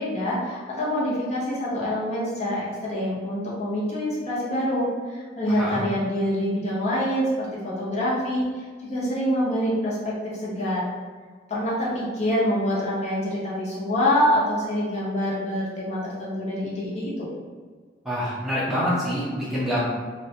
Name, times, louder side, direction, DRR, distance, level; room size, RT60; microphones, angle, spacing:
voice 1, 0.0-10.9 11.5-17.3, equal, 40° left, -7 dB, 0.7 m, -26 dB
voice 2, 5.5-5.8 18.0-19.8, equal, 5° right, -9 dB, 0.5 m, -26 dB
2.4 x 2.1 x 2.7 m, 1.5 s
head